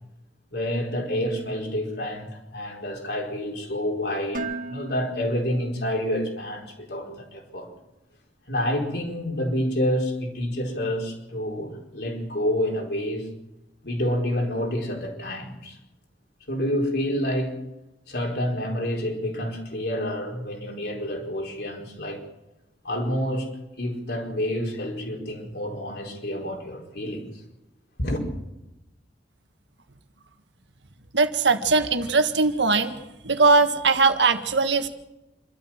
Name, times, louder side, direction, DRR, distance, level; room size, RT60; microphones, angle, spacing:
voice 1, 0.5-7.7 8.5-13.2 13.8-15.8 16.5-17.6 18.1-22.2 22.8-23.5 23.8-27.3 28.0-28.2, equal, 65° left, 4.7 m, -28 dB
Dishes pots and pans, 4.3-6.4, right 2 dB, 50° right, 1.8 m, -37 dB
voice 2, 31.1-32.9 33.2-34.9, right 4 dB, 90° right, 1.7 m, -20 dB
27.0 x 13.0 x 7.4 m
head